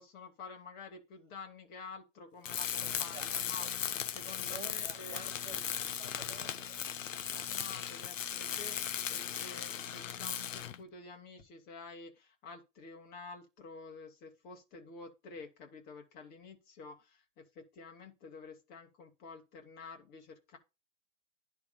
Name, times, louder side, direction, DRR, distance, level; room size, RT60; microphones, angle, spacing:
voice 1, 0.0-5.6 7.3-20.6, left 4 dB, 25° left, 2.0 m, -50 dB
Tools, 2.4-10.8, left 8 dB, 85° left, 0.9 m, -37 dB
voice 2, 2.8-3.7 4.2-6.8, right 9 dB, 40° right, 0.8 m, -52 dB
10.5 x 3.6 x 7.0 m
hypercardioid pair, 145°, 37 cm